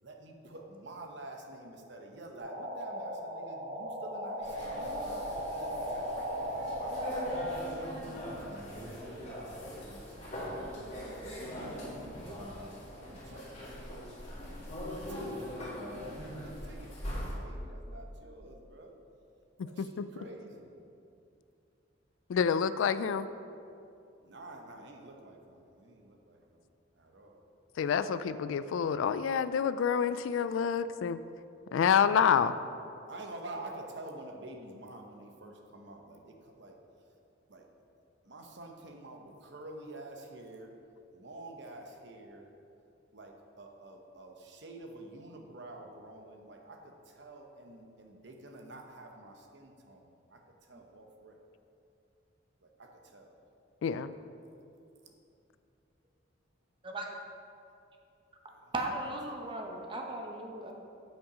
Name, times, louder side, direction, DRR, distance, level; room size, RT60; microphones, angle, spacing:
voice 1, 0.0-7.0 7.6-14.1 14.8-15.7 16.4-18.9 19.6-20.8 24.2-26.7 26.9-27.4 30.5-31.0 33.1-36.8 37.5-37.7 38.2-40.7 41.1-42.5 43.1-51.4 52.6-53.4 55.0-55.1 58.5-58.7 59.3-59.7 60.0-60.4, right 2 dB, 60° right, 2 dB, 0.9 m, -49 dB
sound 1, 2.4-7.5, equal, 45° right, 2.0 m, -37 dB
sound 2, 4.4-17.3, equal, 35° left, 1.9 m, -41 dB
voice 2, 19.6-20.0 22.3-23.3 27.8-31.2 31.7-32.5 53.8-54.1, left 7 dB, 85° left, 14 dB, 0.3 m, -28 dB
voice 3, 56.8-57.1 58.7-60.7, right 2 dB, 25° right, 1 dB, 0.8 m, -37 dB
7.6 x 5.7 x 5.1 m, 2.6 s
head